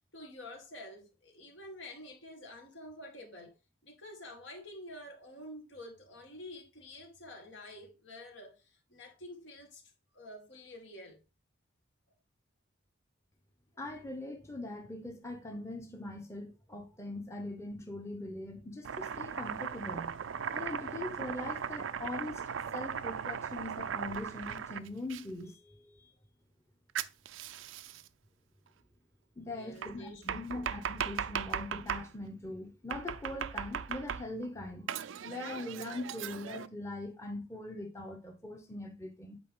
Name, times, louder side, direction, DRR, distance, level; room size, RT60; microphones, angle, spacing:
voice 1, 0.1-3.5 3.8-9.8 10.1-11.2 29.5-30.7, left 1 dB, 75° left, 2.2 m, -49 dB
voice 2, 13.8-20.1 20.5-22.4 22.7-26.1 29.4-34.9 35.2-39.4, left 2 dB, 15° left, 0.9 m, -42 dB
Domestic sounds home sounds, 18.8-25.2 27.0-28.1 29.8-32.1 32.9-34.5 34.9-36.7, right 7 dB, 90° right, 0.5 m, -38 dB
8.4 x 4.8 x 3.7 m
head